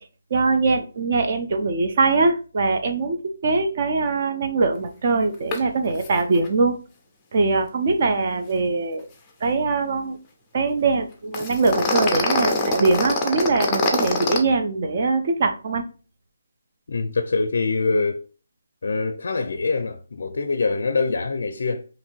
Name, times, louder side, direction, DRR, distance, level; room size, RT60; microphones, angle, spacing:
voice 1, 0.3-6.8 7.3-9.1 9.4-10.2 10.5-15.8, right 3 dB, 40° right, 0.5 m, -22 dB
sound 1, 5.5-5.6 5.9-6.1 6.3-6.5 11.3-14.4, left 3 dB, 10° left, 0.5 m, -23 dB
voice 2, 16.9-18.2 18.8-21.9, left 3 dB, 65° left, 0.4 m, -24 dB
3.0 x 2.7 x 4.3 m
hypercardioid pair, 170°, 0 cm